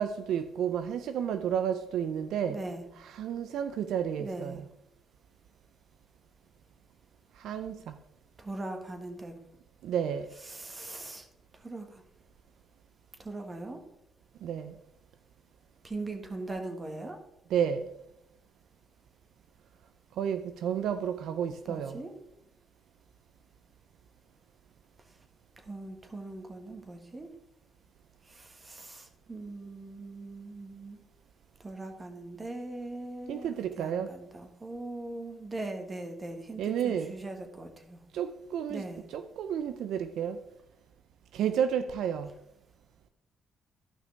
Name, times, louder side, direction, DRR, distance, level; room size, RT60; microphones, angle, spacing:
voice 1, 0.0-2.6 2.9-4.7 7.4-8.0 9.8-10.3 14.4-14.8 17.5-17.9 20.2-22.0 33.3-34.1 36.6-37.2 38.1-40.4 41.3-42.3, right 8 dB, 80° right, 0.5 m, -31 dB
voice 2, 2.5-2.8 4.2-4.6 8.4-9.3 10.5-11.2 11.6-12.0 13.2-13.8 15.8-17.2 21.7-22.1 25.6-27.3 28.3-31.0 31.6-33.5 33.8-38.0 38.7-39.1, right 2 dB, 25° right, 1.6 m, -40 dB
13.0 x 5.8 x 3.4 m
cardioid pair, 90°, 0 cm